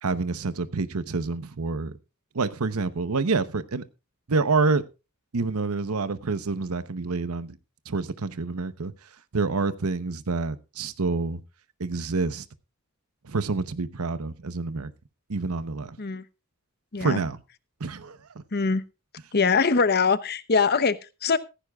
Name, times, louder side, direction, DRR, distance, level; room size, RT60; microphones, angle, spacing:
voice 1, 0.0-2.0 2.3-3.8 4.3-4.8 5.3-7.6 7.9-8.9 9.3-11.4 11.8-12.5 13.2-14.9 15.3-16.0 17.0-17.4 17.8-18.2, right 3 dB, 85° right, 0.9 m, -27 dB
voice 2, 18.5-18.8 19.3-21.4, left 5 dB, 45° left, 0.8 m, -23 dB
15.5 x 14.5 x 2.4 m
head